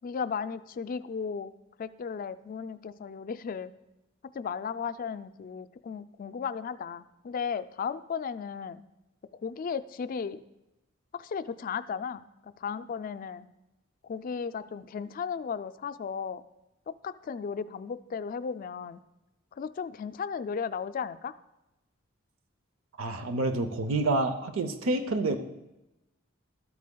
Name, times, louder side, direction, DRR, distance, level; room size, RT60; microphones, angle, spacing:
voice 1, 0.0-1.5 1.8-3.7 4.3-8.8 9.4-10.4 11.1-13.5 14.0-16.4 16.9-19.0 19.6-21.3, left 6 dB, 45° left, 13 dB, 0.3 m, -35 dB
voice 2, 23.0-25.4, right 2 dB, 85° right, 8 dB, 0.6 m, -28 dB
13.0 x 8.3 x 2.2 m, 0.96 s
head